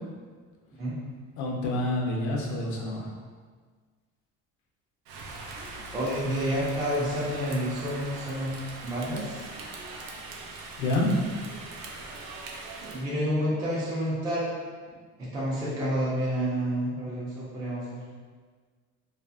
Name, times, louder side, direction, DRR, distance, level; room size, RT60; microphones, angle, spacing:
voice 1, 1.4-3.1 10.8-11.1, left 1 dB, 60° left, -2 dB, 0.6 m, -28 dB
Rain, 5.1-13.0, right 3 dB, 85° right, 0.5 m, -41 dB
voice 2, 5.9-8.5 8.8-9.4 12.8-14.5 15.2-18.0, equal, 15° right, -8 dB, 0.4 m, -29 dB
2.5 x 2.3 x 2.3 m, 1.5 s
cardioid pair, 155°, 32 cm